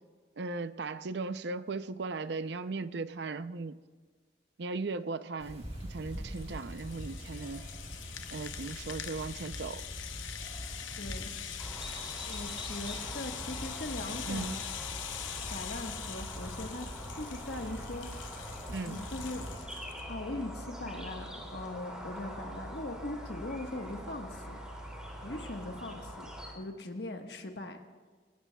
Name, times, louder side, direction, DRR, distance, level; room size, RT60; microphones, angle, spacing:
voice 1, 0.4-3.8 4.6-7.6 8.3-9.8 14.3-14.6 18.7-19.0, right 3 dB, 65° right, 13 dB, 0.5 m, -37 dB
sound 1, 5.4-19.6, equal, 35° right, 3.5 m, -44 dB
Rattle (instrument), 5.8-20.0, left 10 dB, 90° left, 0.8 m, -43 dB
voice 2, 10.9-11.3 12.3-14.6 15.5-16.9 17.1-18.4 18.8-19.4 20.1-24.6 25.2-26.3 26.5-27.8, left 2 dB, 60° left, 4 dB, 1.3 m, -40 dB
sound 2, 11.6-26.5, equal, 5° right, 2.5 m, -44 dB
23.5 x 19.0 x 2.3 m, 1.5 s
head